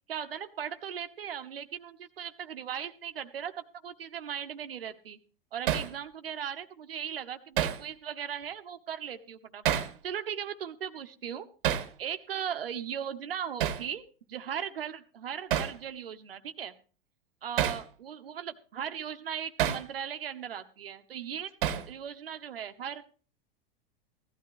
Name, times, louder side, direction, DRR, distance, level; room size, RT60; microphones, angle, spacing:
voice 1, 0.1-3.5 3.8-5.2 5.5-9.6 10.0-11.5 12.0-16.7 17.4-21.5 21.9-23.0, right 8 dB, 75° right, 8 dB, 1.0 m, -38 dB
Hammer, 5.7-5.9 7.6-7.8 9.6-10.0 11.6-11.9 13.6-13.9 15.5-15.8 17.6-17.8 19.6-19.9 21.6-21.9, right 10 dB, 60° right, 1.2 m, -28 dB
16.0 x 12.5 x 3.1 m, 0.38 s
figure-of-eight pair, 95°, 29 cm